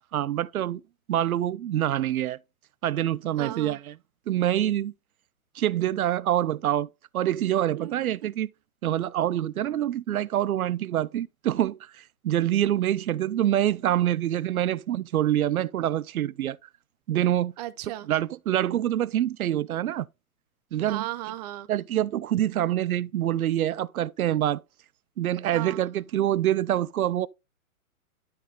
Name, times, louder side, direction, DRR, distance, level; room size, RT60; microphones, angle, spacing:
voice 1, 0.1-0.8 1.1-2.4 2.8-3.9 4.3-4.9 5.6-6.9 7.1-8.5 8.8-16.6 17.1-17.5 18.1-20.1 20.7-21.1 21.7-24.6 25.2-27.3, right 12 dB, 80° right, 0.6 m, -26 dB
voice 2, 3.4-3.8 7.8-8.3 17.6-18.1 20.9-21.7 25.5-25.8, right 14 dB, 30° right, 0.7 m, -36 dB
12.0 x 4.2 x 3.6 m
hypercardioid pair, 140°, 42 cm